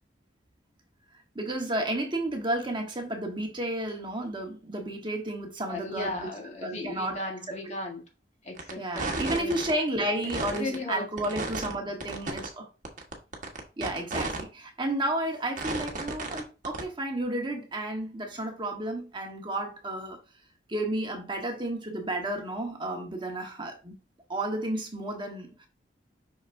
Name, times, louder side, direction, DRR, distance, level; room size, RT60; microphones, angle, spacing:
voice 1, 1.1-6.3 6.6-7.2 7.5-7.6 8.8-12.7 13.8-20.2 20.7-23.9 24.3-25.7, right 1 dB, 30° right, 1.3 m, -32 dB
voice 2, 5.7-8.0 8.4-9.6 10.2-11.1, left 2 dB, 40° left, 1.6 m, -36 dB
sound 1, 8.6-8.7 9.0-9.7 10.2-10.7 11.2-11.7 12.0-12.5 12.8-14.4 14.8-14.9 15.6-16.4 16.6-16.8, right 2 dB, 45° right, 1.3 m, -33 dB
6.2 x 5.8 x 2.6 m
head